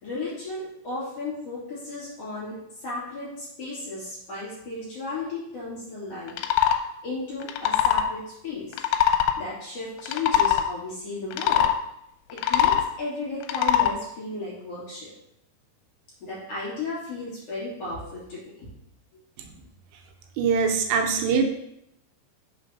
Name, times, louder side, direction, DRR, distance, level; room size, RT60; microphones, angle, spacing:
voice 1, 0.0-2.6 2.8-6.4 7.0-8.8 9.4-11.7 12.3-15.1 16.2-18.7, left 3 dB, 35° left, -9 dB, 3.7 m, -34 dB
sound 1, 6.3-6.8 7.4-8.1 8.7-9.4 10.0-10.7 11.3-11.7 12.3-12.9 13.4-13.9, left 10 dB, 85° left, 2.9 m, -21 dB
voice 2, 20.4-21.4, right 5 dB, 80° right, 3 dB, 3.2 m, -22 dB
6.8 x 6.2 x 5.5 m, 0.80 s
omnidirectional pair, 5.4 m